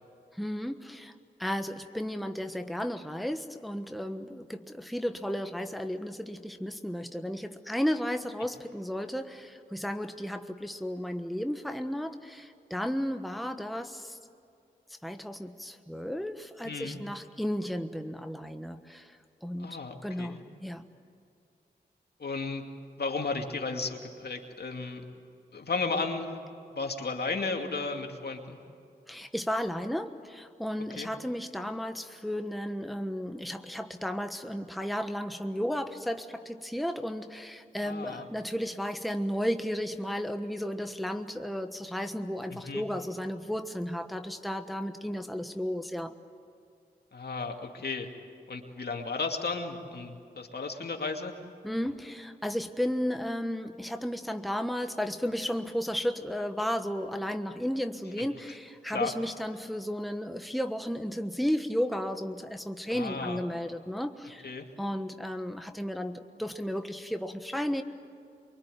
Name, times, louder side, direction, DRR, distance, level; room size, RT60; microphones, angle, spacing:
voice 1, 0.3-1.1 1.4-14.2 15.0-19.8 20.0-20.8 29.1-46.1 51.6-64.5 64.8-67.8, equal, ahead, 7 dB, 1.3 m, -33 dB
voice 2, 16.6-17.0 19.6-20.4 22.2-22.6 23.0-25.0 25.5-26.4 26.7-28.6 30.9-31.1 37.8-38.3 42.5-42.8 47.1-48.1 48.5-51.3 58.2-58.3 58.9-59.1 62.9-63.4 64.4-64.7, left 4 dB, 70° left, 3 dB, 2.5 m, -34 dB
24.5 x 23.5 x 9.3 m, 2.5 s
cardioid pair, 45°, 17 cm